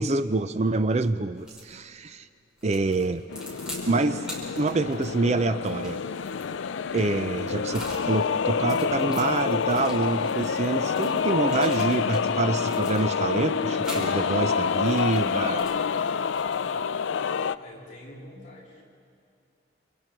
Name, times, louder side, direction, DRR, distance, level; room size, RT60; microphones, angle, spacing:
voice 1, 0.0-2.3 2.6-3.2 3.9-4.2 4.6-6.0 6.9-15.7, right 3 dB, 35° right, 11 dB, 0.5 m, -26 dB
sound 1, 1.4-1.7 2.6-3.9 4.2-8.1 8.5-12.2 12.6-13.3 13.8-14.1 14.7-16.8, equal, 5° right, 5.5 m, -43 dB
sound 2, 3.3-17.6, left 6 dB, 85° left, 0.5 m, -27 dB
voice 2, 17.5-18.8, left 1 dB, 40° left, -5 dB, 7.7 m, -46 dB
28.5 x 27.0 x 4.5 m, 2.5 s
head